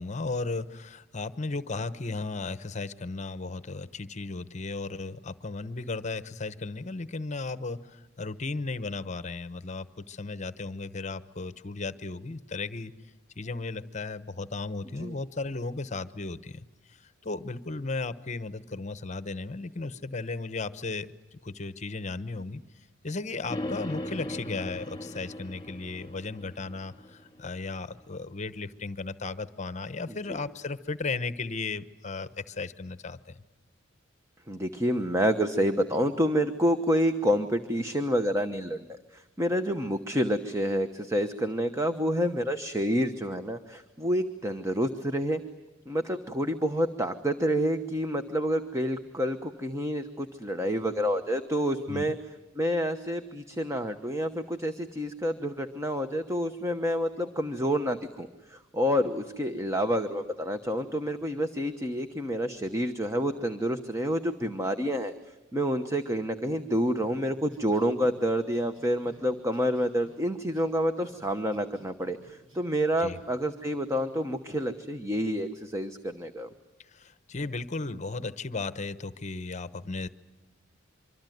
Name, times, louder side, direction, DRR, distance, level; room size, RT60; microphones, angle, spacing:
voice 1, 0.0-12.9 13.4-16.6 16.9-22.6 23.0-33.3 51.9-52.1 73.0-73.2 76.9-80.1, left 3 dB, 35° left, 14 dB, 0.9 m, -35 dB
sound 1, 23.5-27.6, left 1 dB, 20° left, 2.7 m, -38 dB
voice 2, 30.1-30.4 34.5-45.4 45.9-52.1 52.5-65.1 65.5-76.5, equal, 15° right, 7 dB, 1.0 m, -28 dB
sound 2, 67.0-70.7 71.0-73.3 73.6-74.1 74.5-74.7, right 1 dB, 80° right, 8.0 m, -55 dB
25.5 x 25.0 x 9.3 m, 1.1 s
head